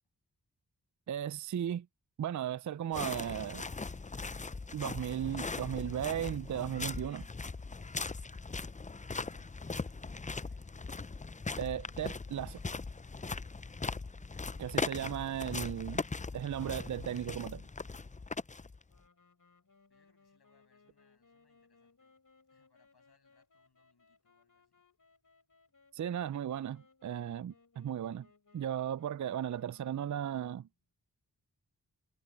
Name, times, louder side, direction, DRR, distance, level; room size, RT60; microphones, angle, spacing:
voice 1, 1.1-1.9 2.2-3.7 4.7-7.3 11.6-12.6 14.6-16.0 16.3-17.6 25.9-28.3 28.5-30.7, right 10 dB, 50° right, 0.4 m, -36 dB
sound 1, 2.9-19.0, left 4 dB, 20° left, 0.5 m, -40 dB
voice 2, 9.2-11.2 19.9-22.2 22.5-24.8, left 5 dB, 85° left, 7.7 m, -74 dB
sound 2, 18.9-30.7, left 4 dB, 55° left, 4.3 m, -67 dB
cardioid pair, 40°, 39 cm